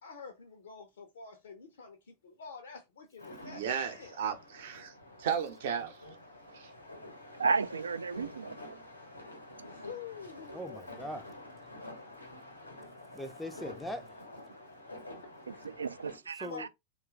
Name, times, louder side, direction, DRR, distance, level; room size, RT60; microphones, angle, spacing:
voice 1, 0.0-4.1 9.7-10.9 13.6-13.7 15.2-15.3 16.4-16.7, left 6 dB, 65° left, 0.6 m, -47 dB
sound 1, 3.2-16.2, left 1 dB, 85° left, 1.0 m, -49 dB
voice 2, 3.4-4.9 5.2-6.0 6.5-6.7, right 7 dB, 55° right, 0.7 m, -34 dB
voice 3, 7.4-8.8 9.6-9.7 15.5-16.7, right 5 dB, 75° right, 0.3 m, -33 dB
voice 4, 10.5-11.4 13.1-14.1 16.4-16.7, equal, ahead, 0.4 m, -40 dB
2.9 x 2.3 x 3.5 m
figure-of-eight pair, 90°, 0 cm